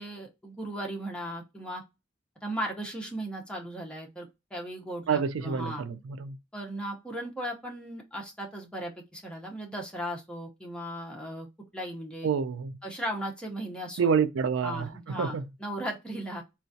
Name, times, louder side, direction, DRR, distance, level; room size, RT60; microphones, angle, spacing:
voice 1, 0.0-1.8 2.4-5.8 6.5-11.5 11.7-12.3 12.8-14.1 14.6-16.4, right 1 dB, 5° left, 0.7 m, -37 dB
voice 2, 5.1-6.4 12.2-12.7 14.0-14.9 15.2-15.4, right 6 dB, 80° right, 0.4 m, -27 dB
3.8 x 2.2 x 2.6 m
head